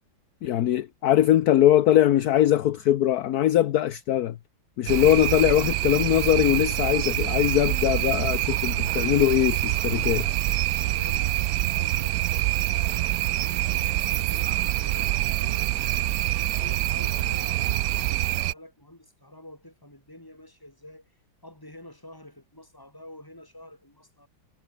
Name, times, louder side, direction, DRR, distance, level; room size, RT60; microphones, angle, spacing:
voice 1, 0.4-4.3 4.8-10.3, left 12 dB, 60° left, 1.2 m, -21 dB
sound 1, 4.9-18.5, right 15 dB, 70° right, 0.9 m, -26 dB
voice 2, 10.8-15.7 16.2-21.0 21.4-24.3, left 1 dB, 10° left, 4.1 m, -48 dB
omnidirectional pair, 2.0 m